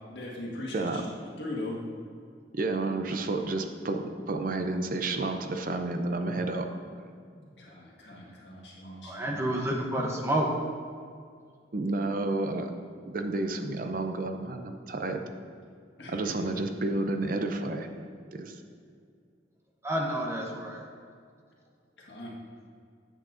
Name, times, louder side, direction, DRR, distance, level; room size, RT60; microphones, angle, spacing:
voice 1, 0.1-1.0 1.4-1.8 7.6-9.4 16.0-16.1 22.0-22.3, left 1 dB, 75° left, -4 dB, 1.7 m, -39 dB
voice 2, 2.5-6.7 11.7-12.7 13.0-15.2 16.1-17.9 18.3-18.6, right 2 dB, 45° right, 6 dB, 0.5 m, -30 dB
voice 3, 9.0-10.5 19.8-20.8, right 1 dB, 15° right, -1 dB, 0.8 m, -29 dB
8.7 x 7.6 x 2.6 m, 2.2 s
head